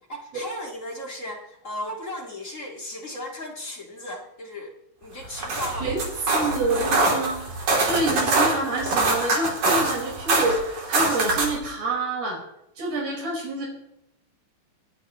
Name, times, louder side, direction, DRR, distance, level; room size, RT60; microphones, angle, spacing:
voice 1, 0.1-4.7 5.0-6.5, left 1 dB, 30° left, -1 dB, 1.5 m, -36 dB
sound 1, 5.2-11.6, right 3 dB, 55° right, 4.3 m, -24 dB
voice 2, 6.3-7.4 7.8-12.4 12.8-13.7, right 2 dB, 80° right, -3 dB, 6.7 m, -27 dB
28.0 x 10.5 x 3.1 m, 0.83 s
omnidirectional pair, 4.1 m